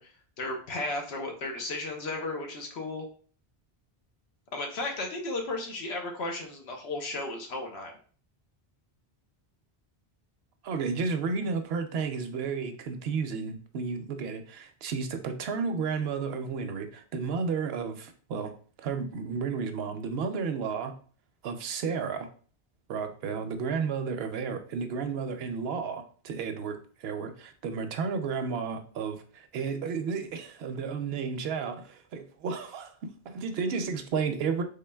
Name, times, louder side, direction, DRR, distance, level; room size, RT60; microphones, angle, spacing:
voice 1, 0.0-3.1 4.5-8.0, left 2 dB, 90° left, 2 dB, 1.1 m, -34 dB
voice 2, 10.6-18.5 18.8-20.9 21.4-22.3 22.9-34.6, right 5 dB, 75° right, 7 dB, 0.8 m, -32 dB
3.8 x 3.7 x 2.2 m, 0.42 s
omnidirectional pair, 1.1 m